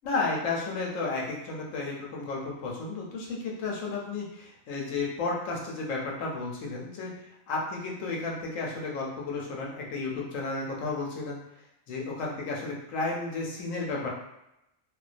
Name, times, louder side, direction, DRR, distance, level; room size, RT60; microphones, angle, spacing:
voice 1, 0.0-7.1 7.5-11.4 11.9-14.1, left 3 dB, 75° left, -2 dB, 0.9 m, -32 dB
2.3 x 2.1 x 2.4 m, 0.88 s
omnidirectional pair, 1.4 m